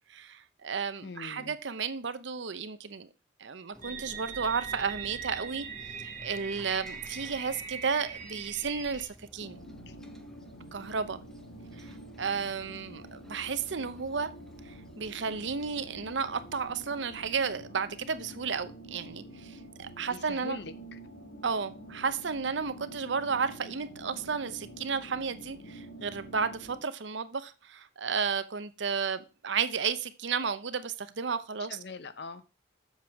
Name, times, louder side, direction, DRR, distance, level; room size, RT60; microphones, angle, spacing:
voice 1, 0.1-3.1 3.4-5.7 6.0-9.6 10.7-11.2 11.8-14.3 14.7-20.6 21.4-31.8, right 5 dB, 65° right, 0.7 m, -33 dB
voice 2, 1.0-1.6 9.9-10.0 20.1-21.0 31.7-32.4, left 3 dB, 55° left, 0.7 m, -42 dB
sound 1, 3.7-17.4, equal, 5° left, 0.7 m, -55 dB
sound 2, 3.8-9.0, right 6 dB, 45° right, 1.7 m, -41 dB
sound 3, 9.4-26.8, right 1 dB, 80° left, 1.5 m, -48 dB
7.4 x 7.4 x 4.7 m
head